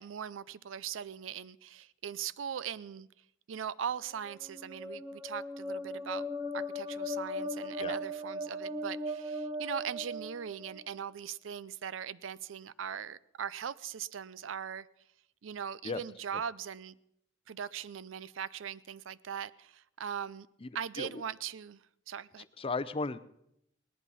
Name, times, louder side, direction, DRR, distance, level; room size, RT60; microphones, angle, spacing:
voice 1, 0.0-3.1 3.5-6.3 6.5-14.9 15.4-17.0 17.5-20.5 20.7-22.4, right 8 dB, 85° right, 0.5 m, -40 dB
sound 1, 4.1-11.0, left 1 dB, 20° right, 0.9 m, -38 dB
voice 2, 20.6-21.2 22.4-23.2, left 3 dB, 30° left, 0.6 m, -36 dB
18.0 x 11.0 x 5.6 m
head